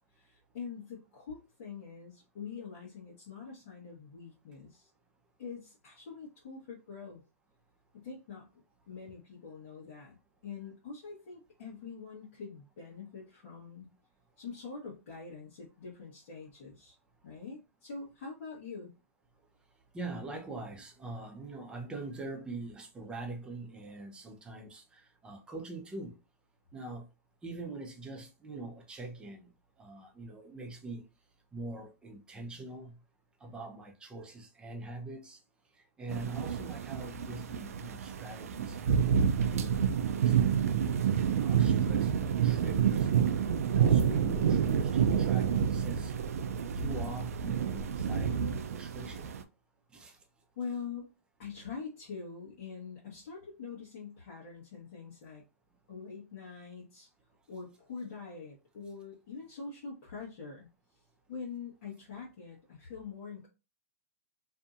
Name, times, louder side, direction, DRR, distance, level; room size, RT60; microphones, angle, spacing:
voice 1, 0.1-4.9 5.4-7.2 7.9-10.2 10.4-13.9 14.4-17.0 17.2-18.9 50.6-51.1 51.4-55.4 55.9-57.1 57.5-60.7 61.3-63.5, left 5 dB, 65° left, 1.1 m, -44 dB
voice 2, 19.9-26.2 26.7-27.1 27.4-29.5 29.8-31.0 31.5-33.0 33.4-35.4 36.0-40.7 41.0-41.1 41.4-43.1 43.7-46.1 46.7-49.3 49.9-50.2, right 2 dB, 10° right, 0.6 m, -44 dB
sound 1, 36.1-49.4, right 8 dB, 75° right, 0.4 m, -28 dB
2.7 x 2.6 x 2.4 m
hypercardioid pair, 125°, 8 cm